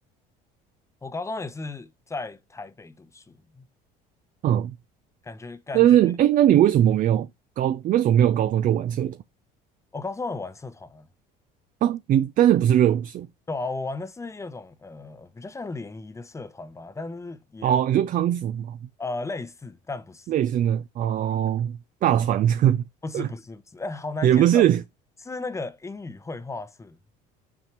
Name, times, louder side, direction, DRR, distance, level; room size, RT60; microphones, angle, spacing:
voice 1, 1.0-3.6 5.2-5.9 9.9-11.1 13.5-17.8 19.0-20.3 23.0-24.6 25.2-27.0, left 3 dB, 15° left, 0.8 m, -35 dB
voice 2, 4.4-4.7 5.7-7.3 7.6-9.2 11.8-13.3 17.6-18.8 20.3-22.8 23.1-23.3 24.2-24.8, right 11 dB, 45° right, 0.5 m, -20 dB
6.1 x 4.3 x 4.6 m
supercardioid pair, 105°, 19 cm